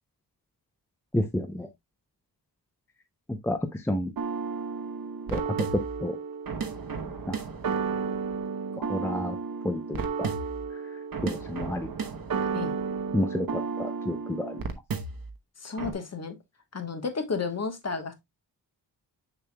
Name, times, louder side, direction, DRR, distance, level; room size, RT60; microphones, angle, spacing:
voice 1, 1.1-1.7 3.3-4.1 5.3-5.4 6.0-6.2 7.3-7.4 8.9-9.4 9.6-10.3 11.2-11.9 13.1-14.6, left 1 dB, 5° left, 0.6 m, -30 dB
sound 1, 4.2-15.3 15.8-15.9, right 5 dB, 55° right, 1.1 m, -32 dB
voice 2, 15.6-16.4 16.7-18.1, left 5 dB, 40° left, 1.3 m, -32 dB
6.7 x 6.4 x 2.3 m
wide cardioid pair, 130°, 42 cm